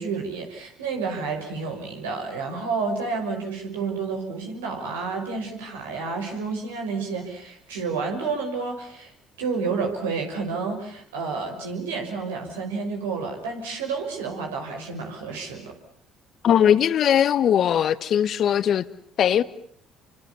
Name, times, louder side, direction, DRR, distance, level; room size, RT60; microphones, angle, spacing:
voice 1, 0.0-9.1 9.4-15.7, right 4 dB, 85° right, 6.0 m, -30 dB
voice 2, 16.4-18.8 19.2-19.4, left 9 dB, 55° left, 1.4 m, -19 dB
29.5 x 25.5 x 7.1 m
hypercardioid pair, 60°, 0 cm